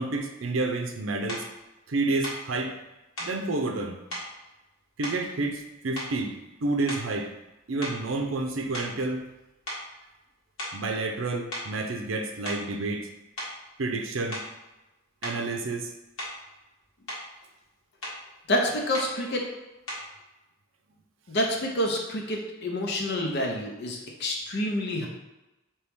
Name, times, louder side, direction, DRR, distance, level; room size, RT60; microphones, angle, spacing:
voice 1, 0.0-1.5 1.9-2.7 3.2-4.0 5.0-7.3 7.7-9.2 10.7-13.1 13.8-14.4 15.2-15.9, right 2 dB, 75° right, 4 dB, 0.6 m, -29 dB
sound 1, 1.3-1.5 2.2-2.5 3.2-3.4 4.1-4.3 5.0-5.6 5.9-6.3 6.8-7.2 7.8-9.4 9.7-9.9 10.6-10.9 11.5-11.7 12.3-12.7 13.4-13.6 14.3-14.6 15.2-15.4 16.2-16.5 16.8-17.3 18.0-18.2 18.9-19.2 19.9-20.1, equal, 90° left, 1.5 m, -37 dB
voice 2, 18.5-19.4 21.3-25.1, left 1 dB, 60° left, 0 dB, 0.7 m, -28 dB
4.4 x 3.0 x 3.5 m, 1.0 s
head